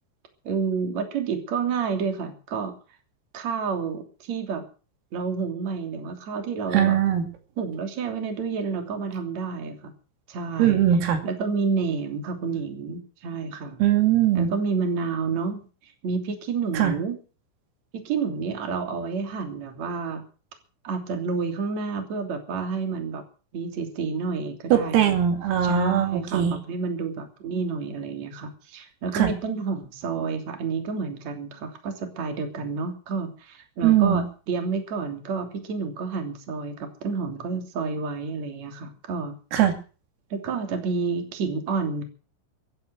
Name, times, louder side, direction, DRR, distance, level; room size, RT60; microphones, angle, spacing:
voice 1, 0.4-2.7 3.3-4.6 5.1-7.0 7.6-9.9 10.3-10.8 11.2-13.8 14.3-17.2 17.9-20.2 20.8-23.2 23.5-25.0 25.6-39.4 40.3-42.0, right 5 dB, 40° right, 5 dB, 3.6 m, -29 dB
voice 2, 6.7-7.2 10.6-11.2 13.8-14.5 16.7-16.9 24.7-26.5 29.2-29.3 33.8-34.2 39.5-39.8, right 10 dB, 85° right, 6 dB, 5.1 m, -20 dB
15.5 x 12.5 x 6.2 m, 0.37 s
omnidirectional pair, 5.9 m